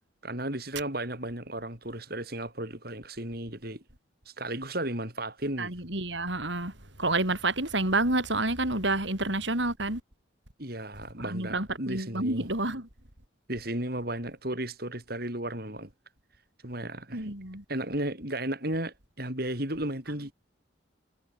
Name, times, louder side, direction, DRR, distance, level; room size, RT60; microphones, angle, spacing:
voice 1, 0.2-3.8 4.2-5.7 10.6-12.5 13.5-15.9 16.6-17.3 17.7-20.3, right 1 dB, 50° right, 6.4 m, -34 dB
voice 2, 5.6-6.7 7.0-10.0 11.2-12.9 17.1-17.6, right 2 dB, 65° right, 7.0 m, -29 dB
head